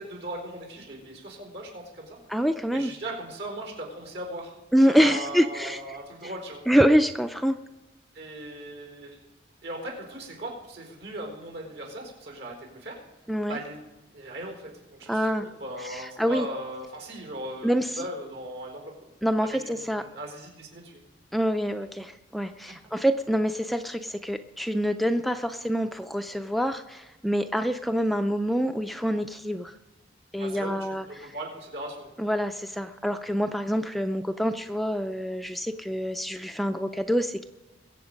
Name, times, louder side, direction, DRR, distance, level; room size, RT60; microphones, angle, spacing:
voice 1, 0.0-2.2 2.7-4.5 4.8-6.6 8.1-9.3 9.6-13.0 13.5-13.8 14.1-18.9 19.5-21.0 22.7-22.8 30.4-32.1, right 1 dB, 70° right, 1 dB, 4.5 m, -38 dB
voice 2, 2.3-2.9 4.7-5.8 6.7-7.6 13.3-13.6 15.1-15.5 15.8-16.5 17.6-18.0 19.2-20.0 21.3-29.7 30.3-31.0 32.2-37.4, equal, ahead, 7 dB, 0.4 m, -26 dB
22.0 x 8.1 x 5.2 m, 1.1 s
head